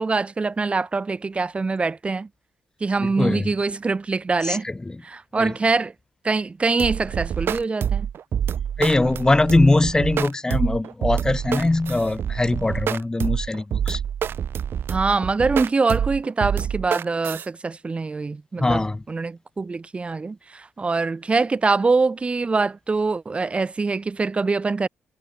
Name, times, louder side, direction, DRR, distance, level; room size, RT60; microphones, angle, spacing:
voice 1, 0.0-2.3 2.8-4.7 5.0-5.9 6.2-8.1 14.9-24.9, right 4 dB, 30° right, 2.7 m, -24 dB
voice 2, 3.2-3.5 4.5-4.6 4.9-5.0 5.4-5.5 8.8-14.0 18.6-19.0, left 2 dB, 15° left, 2.8 m, -21 dB
sound 1, 6.8-17.5, right 8 dB, 60° right, 1.3 m, -27 dB
cardioid pair, 100°, 4 cm